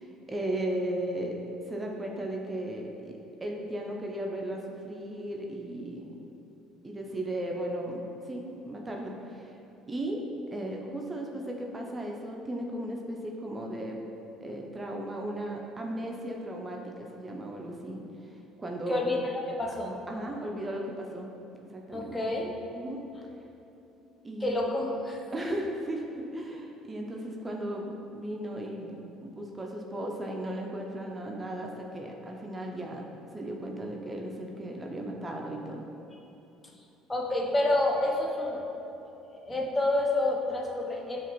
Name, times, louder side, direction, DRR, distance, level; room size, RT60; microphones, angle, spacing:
voice 1, 0.0-1.4 1.7-6.2 6.8-9.5 9.9-14.0 14.4-19.1 20.1-21.4 21.7-22.3 22.7-23.0 24.2-24.7 25.3-28.9 29.2-33.1 33.3-35.8, right 1 dB, 25° right, 0 dB, 0.5 m, -36 dB
voice 2, 18.9-19.3 19.6-20.0 21.9-22.5 24.4-25.2 25.5-25.6 37.1-38.6 39.0-41.2, left 2 dB, 25° left, -1 dB, 0.6 m, -29 dB
5.6 x 2.4 x 2.9 m, 3.0 s
supercardioid pair, 70°, 0 cm